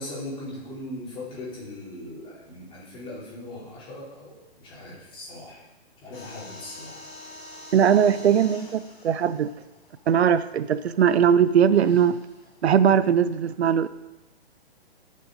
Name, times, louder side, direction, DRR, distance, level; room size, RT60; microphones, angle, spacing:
voice 1, 0.0-5.6 6.0-7.0, left 1 dB, 15° left, -7 dB, 4.0 m, -39 dB
sound 1, 6.1-10.7 11.7-13.2, left 2 dB, 30° left, 3.8 m, -46 dB
voice 2, 7.7-9.5 10.1-12.2 12.6-13.9, right 8 dB, 85° right, 15 dB, 0.6 m, -20 dB
13.0 x 6.8 x 5.0 m, 0.98 s
hypercardioid pair, 150°, 32 cm